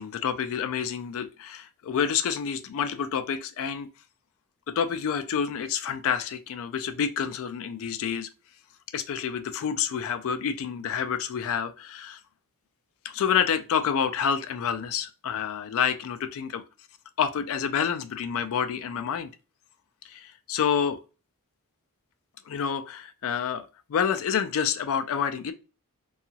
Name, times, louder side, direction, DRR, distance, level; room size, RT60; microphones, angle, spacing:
voice 1, 0.0-3.9 4.7-8.3 8.9-12.2 13.0-16.6 17.2-19.3 20.0-21.0 22.5-25.5, left 7 dB, 65° left, 0.3 m, -28 dB
2.8 x 2.3 x 2.7 m
head